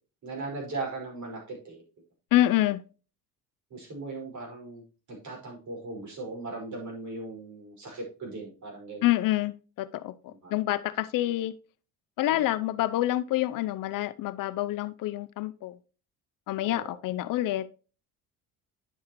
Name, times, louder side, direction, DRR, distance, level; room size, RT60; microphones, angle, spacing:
voice 1, 0.2-1.8 3.7-4.8 5.1-9.1 10.3-10.5 12.3-12.4 16.6-17.0, right 3 dB, 50° right, 5.4 m, -38 dB
voice 2, 2.3-2.8 9.0-11.5 12.2-15.8 16.5-17.7, left 15 dB, 60° left, 0.6 m, -27 dB
9.9 x 7.2 x 3.0 m
cardioid pair, 115°, 37 cm